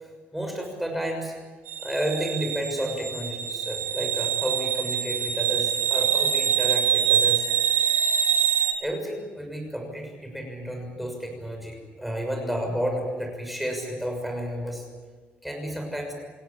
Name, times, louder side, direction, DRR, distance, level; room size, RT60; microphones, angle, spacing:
voice 1, 0.0-1.3 1.8-7.5 8.8-14.8 15.4-16.1, equal, ahead, 2 dB, 6.4 m, -31 dB
sound 1, 1.7-8.7, right 9 dB, 70° right, 5.6 m, -24 dB
29.0 x 17.0 x 8.6 m, 1.4 s
cardioid pair, 175°, 4 cm